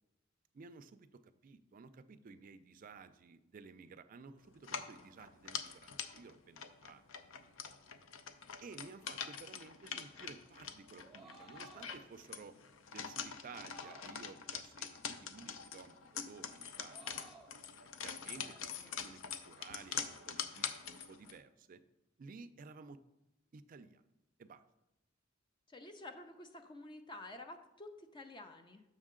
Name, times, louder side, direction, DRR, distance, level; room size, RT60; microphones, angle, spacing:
voice 1, 0.5-7.0 8.6-12.6 12.9-17.3 18.0-21.8 22.2-23.0 23.5-24.0 24.4-24.6, right 4 dB, 45° right, 10 dB, 0.4 m, -54 dB
sound 1, 4.6-21.4, left 7 dB, 80° left, 0.5 m, -45 dB
sound 2, 10.9-12.0 13.7-14.5 16.8-17.6, right 2 dB, ahead, 0.8 m, -57 dB
voice 2, 18.4-19.0 25.7-28.8, left 2 dB, 25° left, 7 dB, 0.4 m, -51 dB
6.4 x 6.3 x 3.7 m, 0.95 s
head